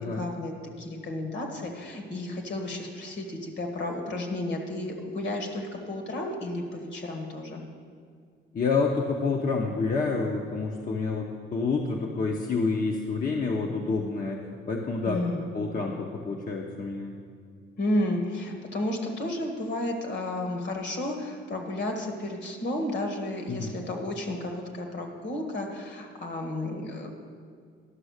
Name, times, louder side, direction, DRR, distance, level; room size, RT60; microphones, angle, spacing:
voice 1, 0.0-7.6 15.0-15.5 17.8-27.1, left 1 dB, 60° left, 3 dB, 1.7 m, -32 dB
voice 2, 8.5-15.2 15.5-17.1 23.5-23.8, left 4 dB, 45° left, 0 dB, 0.9 m, -28 dB
11.5 x 6.1 x 6.5 m, 2.1 s
cardioid pair, 90°, 20 cm